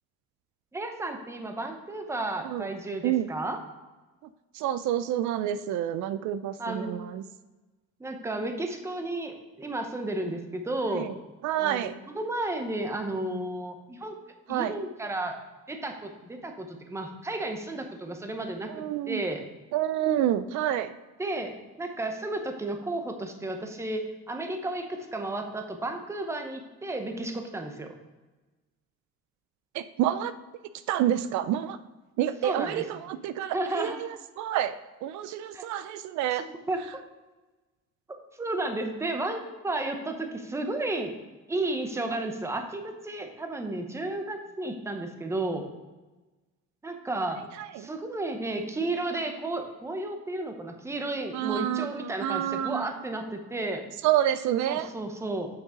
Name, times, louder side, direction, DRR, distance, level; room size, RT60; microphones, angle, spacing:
voice 1, 0.7-3.6 6.6-7.0 8.0-11.1 11.6-14.2 14.5-15.4 15.7-18.7 19.1-19.4 21.2-27.9 32.4-32.9 33.5-34.0 35.5-35.7 36.3-36.8 38.4-41.1 41.5-45.7 46.8-47.4 47.8-53.8 54.7-55.5, right 2 dB, 10° right, 5 dB, 0.8 m, -33 dB
voice 2, 4.6-7.2 10.9-11.1 11.4-11.9 14.5-14.7 18.7-19.2 19.7-20.9 29.7-30.3 30.9-31.8 32.2-33.9 34.4-34.8 35.0-36.4 51.3-52.9 54.0-54.9, right 11 dB, 75° right, 13 dB, 0.5 m, -28 dB
8.1 x 5.9 x 3.7 m, 1.2 s
cardioid pair, 145°, 29 cm